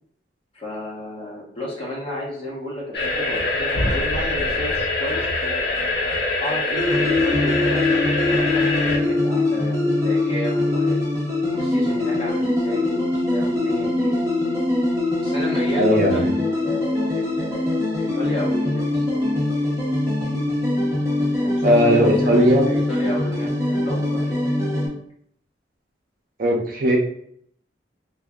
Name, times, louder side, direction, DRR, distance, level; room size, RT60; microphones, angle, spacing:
voice 1, 0.5-5.7 6.4-11.0 11.5-13.0 13.3-14.2 15.2-19.2 21.4-24.8, left 1 dB, 30° left, -4 dB, 0.9 m, -32 dB
sound 1, 2.9-9.0, left 2 dB, 65° left, 0.8 m, -24 dB
sound 2, 6.8-24.9, left 2 dB, 15° right, 1.0 m, -22 dB
voice 2, 15.8-16.3 21.6-22.7 26.4-27.0, equal, 50° right, 0 dB, 0.7 m, -17 dB
2.7 x 2.3 x 3.5 m, 0.66 s
head